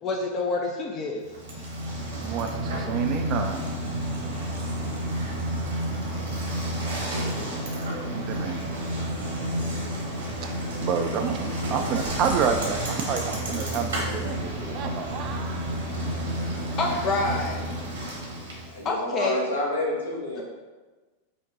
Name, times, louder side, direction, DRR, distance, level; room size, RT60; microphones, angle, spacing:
voice 1, 0.0-1.3 16.8-17.6 18.8-19.4 20.4-20.5, left 3 dB, 30° left, 1 dB, 0.4 m, -27 dB
Bicycle, 1.3-18.8, right 1 dB, 70° right, 1.1 m, -30 dB
voice 2, 2.2-3.6 8.1-8.6 10.4-10.5 10.8-16.2, right 7 dB, 35° right, 5 dB, 0.4 m, -29 dB
voice 3, 7.1-7.4 18.7-20.4, left 1 dB, 70° left, -3 dB, 1.1 m, -29 dB
5.2 x 2.2 x 3.9 m, 1.3 s
figure-of-eight pair, 90°, 0 cm